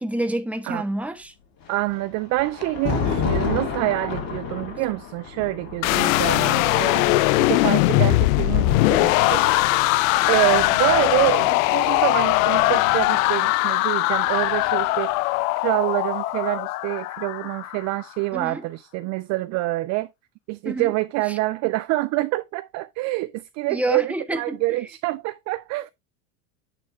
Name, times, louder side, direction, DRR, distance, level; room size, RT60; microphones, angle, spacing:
voice 1, 0.0-1.3 18.3-18.6 20.6-20.9 21.3-21.4 23.7-24.6, right 1 dB, 5° right, 1.2 m, -28 dB
Thunder, 1.6-8.8 9.9-11.6, left 5 dB, 45° left, 2.6 m, -31 dB
voice 2, 1.7-9.4 10.3-15.1 15.6-20.1 20.5-25.9, right 19 dB, 40° right, 0.4 m, -26 dB
sound 1, 5.8-17.9, left 19 dB, 65° left, 0.5 m, -20 dB
8.9 x 3.5 x 4.3 m
hypercardioid pair, 95°, 46 cm